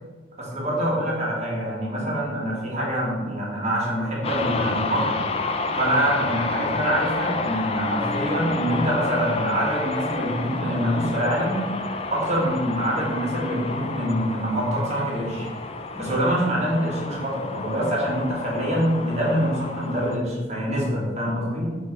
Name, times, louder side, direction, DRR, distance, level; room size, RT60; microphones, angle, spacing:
voice 1, 0.4-5.2 5.8-11.6 12.1-15.5 16.0-21.8, equal, 40° right, -4 dB, 1.7 m, -25 dB
sound 1, 4.2-20.2, left 3 dB, 35° left, 0.4 m, -30 dB
6.2 x 3.3 x 4.6 m, 1.3 s
head